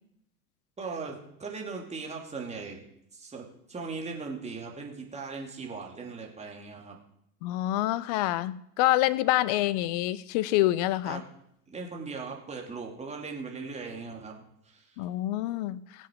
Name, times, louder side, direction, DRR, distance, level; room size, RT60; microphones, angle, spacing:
voice 1, 0.8-2.8 3.1-7.0 11.1-11.3 11.7-14.4 14.6-15.0, right 4 dB, 15° right, 0 dB, 2.8 m, -39 dB
voice 2, 7.4-11.2 15.0-15.8, left 15 dB, 25° left, 21 dB, 0.4 m, -26 dB
21.5 x 7.5 x 4.8 m, 0.76 s
figure-of-eight pair, 85°, 49 cm